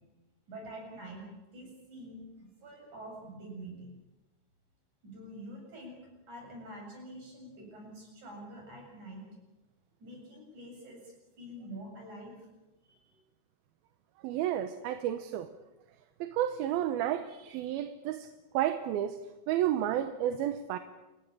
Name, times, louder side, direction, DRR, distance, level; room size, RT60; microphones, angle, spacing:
voice 1, 0.5-3.9 5.0-6.0 6.3-9.3 10.0-12.4 12.9-13.2, right 1 dB, 50° right, 1 dB, 9.1 m, -46 dB
voice 2, 14.2-15.5 16.2-18.3 18.5-19.2 19.5-20.8, right 11 dB, 80° right, 9 dB, 2.8 m, -31 dB
29.0 x 15.5 x 8.8 m, 1.1 s
omnidirectional pair, 4.3 m